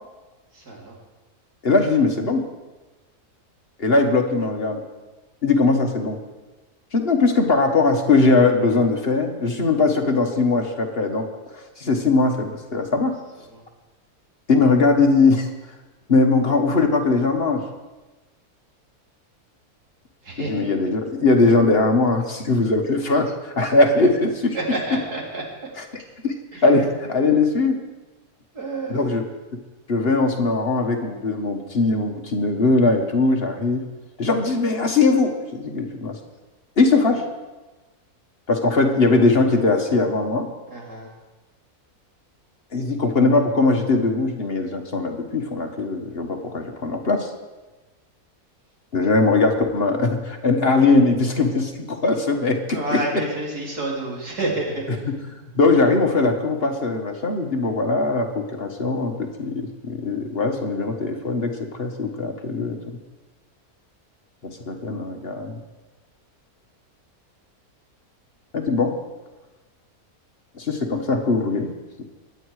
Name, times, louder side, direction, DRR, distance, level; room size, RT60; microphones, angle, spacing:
voice 1, 0.5-1.0 13.5-13.6 20.2-20.7 24.5-25.4 26.5-26.6 28.5-29.1 40.7-41.1 52.7-54.8, right 2 dB, 90° right, -3 dB, 4.1 m, -29 dB
voice 2, 1.6-2.4 3.8-4.8 5.4-6.2 6.9-11.3 11.5-13.1 14.5-15.5 16.1-17.6 20.4-24.6 24.9-25.0 25.8-26.4 26.6-27.8 28.9-29.2 29.9-33.8 34.2-36.2 36.8-37.2 38.5-40.5 42.7-47.3 48.9-53.2 54.9-62.8 64.4-65.5 68.5-68.9 70.5-71.7, left 3 dB, 40° left, 4 dB, 1.5 m, -20 dB
23.0 x 9.3 x 4.8 m, 1.2 s
omnidirectional pair, 1.6 m